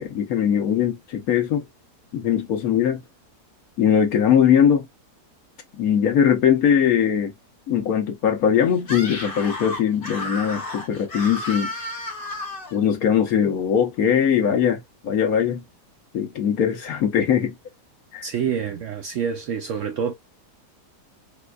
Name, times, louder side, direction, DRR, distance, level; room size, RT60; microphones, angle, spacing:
voice 1, 0.0-1.6 2.1-3.0 3.8-4.9 5.8-7.3 7.7-11.7 12.7-15.6 16.1-17.5 18.1-18.2, left 8 dB, 65° left, 1.2 m, -20 dB
Screaming, 8.8-12.8, left 2 dB, 40° left, 0.9 m, -32 dB
voice 2, 18.2-20.1, right 7 dB, 70° right, 0.8 m, -27 dB
4.3 x 2.3 x 2.3 m
omnidirectional pair, 1.7 m